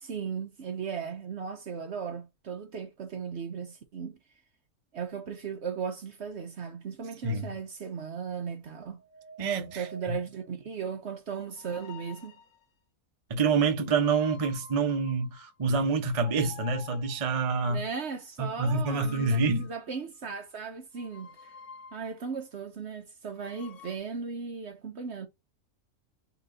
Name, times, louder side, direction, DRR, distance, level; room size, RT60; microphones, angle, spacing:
voice 1, 0.0-4.2 4.9-9.0 9.8-12.3 17.7-21.5 21.9-25.3, right 6 dB, 55° right, 0.9 m, -37 dB
sound 1, 7.2-7.5 9.0-10.5 11.5-12.6 13.9-15.6 16.2-17.4 18.6-20.2 21.0-22.3 23.3-24.0, left 5 dB, 80° left, 1.4 m, -50 dB
voice 2, 9.4-10.2 13.3-17.8 18.4-19.7, right 4 dB, 30° right, 0.6 m, -27 dB
4.2 x 3.0 x 3.8 m
omnidirectional pair, 1.6 m